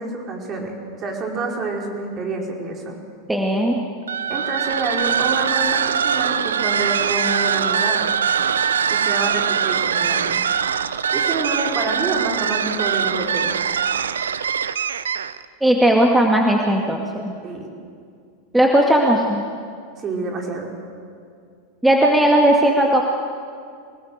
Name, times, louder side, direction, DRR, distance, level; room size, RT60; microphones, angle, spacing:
voice 1, 0.0-3.0 4.3-8.1 8.9-10.4 11.1-13.7 17.4-17.7 20.0-20.7, right 3 dB, 35° right, 0 dB, 5.1 m, -28 dB
voice 2, 3.3-3.8 15.6-17.3 18.5-19.4 21.8-23.0, right 1 dB, 5° right, 0 dB, 2.2 m, -17 dB
sound 1, 4.0-15.5, right 7 dB, 75° right, 0.7 m, -22 dB
25.5 x 19.5 x 8.1 m, 2.3 s
figure-of-eight pair, 85°, 0 cm